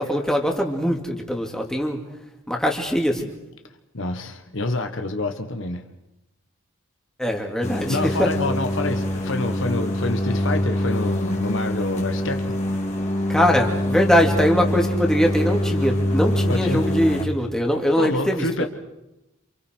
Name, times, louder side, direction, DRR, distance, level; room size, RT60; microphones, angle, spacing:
voice 1, 0.0-2.0 2.5-3.3 7.2-8.3 13.3-18.7, equal, 5° left, 1 dB, 2.5 m, -22 dB
voice 2, 3.9-5.8 7.9-12.5 16.5-16.9 18.0-18.7, left 2 dB, 65° left, 6 dB, 1.4 m, -27 dB
sound 1, 7.6-17.2, left 1 dB, 35° left, 2.9 m, -24 dB
28.0 x 28.0 x 4.6 m, 0.94 s
head